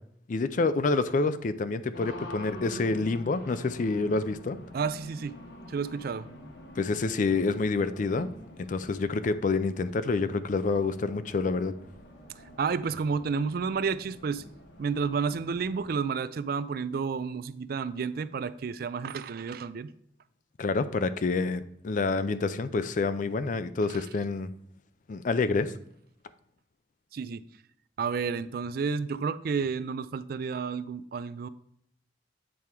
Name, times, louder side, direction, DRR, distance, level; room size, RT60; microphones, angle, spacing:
voice 1, 0.3-4.6 6.8-8.3 8.7-11.7 20.6-24.5 25.1-25.7, left 3 dB, 45° left, 0.4 m, -28 dB
Race car auto racing, 1.9-16.0, left 1 dB, 60° left, 1.0 m, -47 dB
voice 2, 4.7-5.4 5.7-6.3 12.6-14.4 14.8-19.9 27.1-27.4 28.0-31.5, right 5 dB, 50° right, 0.3 m, -31 dB
8.4 x 3.5 x 4.5 m
head